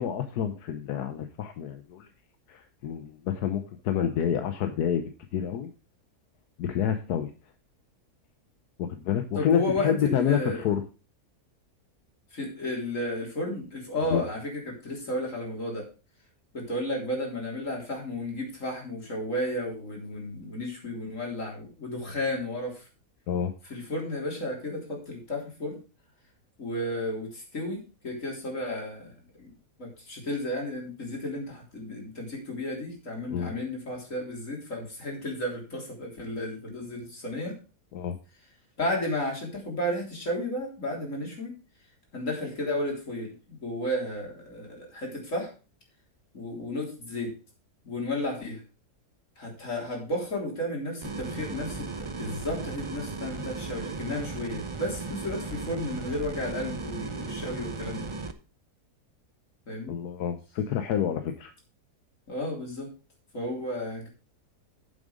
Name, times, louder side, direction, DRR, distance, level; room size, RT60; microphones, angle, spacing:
voice 1, 0.0-2.1 2.5-5.7 6.6-7.3 8.8-10.8 14.0-14.2 23.3-23.5 33.3-33.5 37.9-38.2 59.9-61.5, left 8 dB, 85° left, 8 dB, 1.3 m, -28 dB
voice 2, 9.3-10.6 12.3-15.9 16.5-22.8 23.7-25.8 26.6-29.1 29.4-29.5 29.8-37.6 38.8-41.5 42.1-45.5 46.3-47.3 47.8-48.6 49.4-58.1 59.7-60.0 62.3-62.9 63.3-64.1, left 1 dB, 55° left, 0 dB, 4.0 m, -33 dB
sound 1, 51.0-58.3, right 3 dB, 35° right, 0.5 m, -36 dB
9.1 x 7.3 x 5.1 m, 0.33 s
omnidirectional pair, 1.7 m